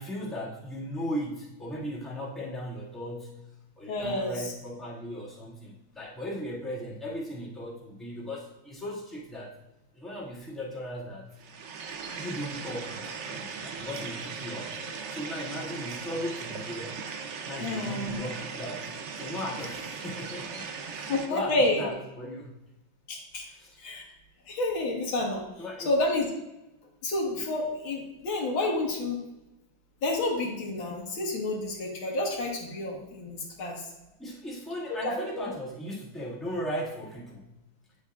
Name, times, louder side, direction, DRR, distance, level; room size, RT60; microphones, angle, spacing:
voice 1, 0.0-3.4 3.8-9.5 9.9-11.3 12.1-14.8 15.1-17.0 17.4-22.6 23.4-23.8 25.6-25.9 34.2-37.5, equal, ahead, -8 dB, 1.6 m, -37 dB
voice 2, 3.9-4.5 17.6-18.2 21.1-21.9 23.1-23.4 23.8-24.1 24.5-25.5 25.9-26.3 27.0-29.2 30.0-33.9 34.9-35.4, left 2 dB, 90° left, -1 dB, 2.2 m, -29 dB
sound 1, 11.4-21.3, right 5 dB, 80° right, 0.6 m, -38 dB
9.1 x 7.1 x 2.4 m, 0.97 s
omnidirectional pair, 2.1 m